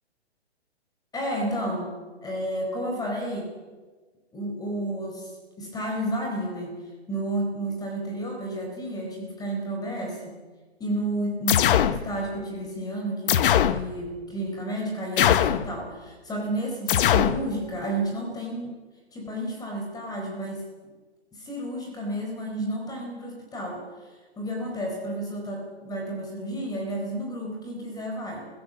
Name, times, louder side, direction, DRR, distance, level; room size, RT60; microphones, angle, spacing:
voice 1, 1.1-1.9 2.2-3.5 4.3-6.8 7.1-10.4 10.8-18.8 19.1-20.6 21.3-23.8 24.4-28.5, right 1 dB, 10° left, 1 dB, 4.2 m, -31 dB
sound 1, 11.5-12.0 13.3-13.8 15.2-15.7 16.9-17.4, left 10 dB, 50° left, 1.1 m, -20 dB
19.0 x 16.5 x 8.2 m, 1.3 s
hypercardioid pair, 140°, 34 cm